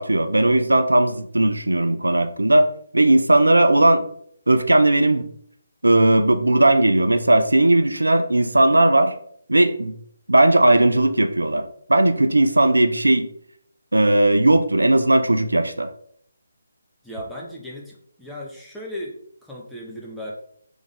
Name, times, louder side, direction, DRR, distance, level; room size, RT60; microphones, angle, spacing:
voice 1, 0.0-2.7 2.9-4.1 4.5-5.3 5.8-9.1 9.5-9.9 10.3-13.3 13.9-15.9, right 1 dB, 80° right, 9 dB, 0.4 m, -17 dB
voice 2, 17.0-20.3, equal, ahead, -6 dB, 0.7 m, -36 dB
3.5 x 3.5 x 3.4 m, 0.65 s
figure-of-eight pair, 150°, 0 cm